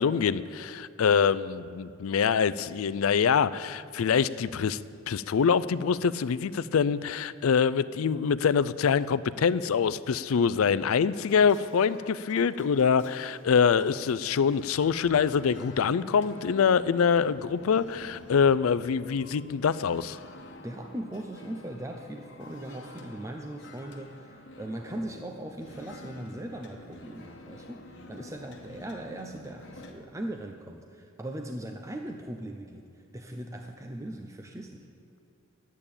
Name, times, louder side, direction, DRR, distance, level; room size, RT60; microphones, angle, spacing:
voice 1, 0.0-4.8 5.1-20.2, left 6 dB, 80° left, 16 dB, 0.4 m, -25 dB
sound 1, 10.6-29.9, left 2 dB, 55° left, 1.2 m, -49 dB
voice 2, 20.6-32.9 33.1-34.9, right 1 dB, 15° right, 3 dB, 0.6 m, -39 dB
11.0 x 8.4 x 8.7 m, 2.4 s
head